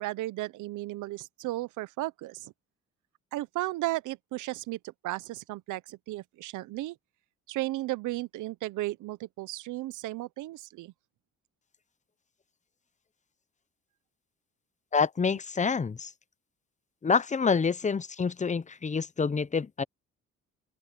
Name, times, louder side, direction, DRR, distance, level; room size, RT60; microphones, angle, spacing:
voice 1, 0.0-2.5 3.3-7.0 7.5-10.9, right 17 dB, 85° right, 0.7 m, -35 dB
voice 2, 14.9-16.1 17.0-19.8, left 5 dB, 25° left, 0.8 m, -27 dB
open air
cardioid pair, 90°, 30 cm